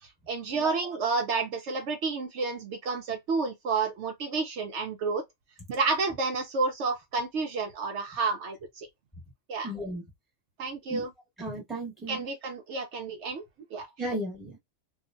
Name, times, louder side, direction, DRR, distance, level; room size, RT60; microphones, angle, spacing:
voice 1, 0.3-5.2 5.7-8.9 9.5-9.7 10.6-11.1 12.1-13.4 13.7-13.9, right 4 dB, 70° right, 0.9 m, -30 dB
voice 2, 9.6-10.0 10.9-11.0 11.4-12.3 14.0-14.6, right 1 dB, ahead, 1.1 m, -35 dB
2.8 x 2.4 x 2.4 m
omnidirectional pair, 1.3 m